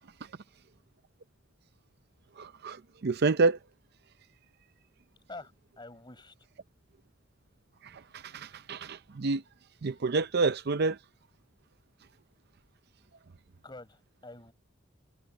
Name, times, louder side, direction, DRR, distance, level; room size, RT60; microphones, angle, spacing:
voice 1, 2.4-3.6 7.8-9.4 9.8-11.0, right 3 dB, 55° right, 0.6 m, -28 dB
voice 2, 5.8-6.3 13.6-14.5, left 2 dB, 20° left, 5.4 m, -46 dB
head